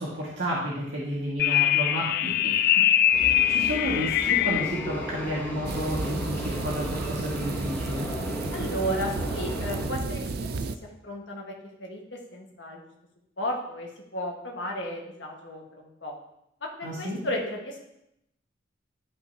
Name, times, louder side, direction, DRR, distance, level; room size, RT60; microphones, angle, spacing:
voice 1, 0.0-2.5 3.1-8.1 16.8-17.2, equal, 80° right, -7 dB, 1.9 m, -31 dB
sound 1, 1.4-4.9, left 11 dB, 55° left, 0.3 m, -23 dB
sound 2, 3.1-9.9, equal, 10° left, 1.0 m, -36 dB
sound 3, 5.7-10.8, right 3 dB, 55° right, 0.4 m, -32 dB
voice 2, 8.5-11.5 11.8-12.8 13.4-16.1 16.6-17.8, equal, 75° left, -1 dB, 1.6 m, -34 dB
12.5 x 5.3 x 2.9 m, 0.80 s
head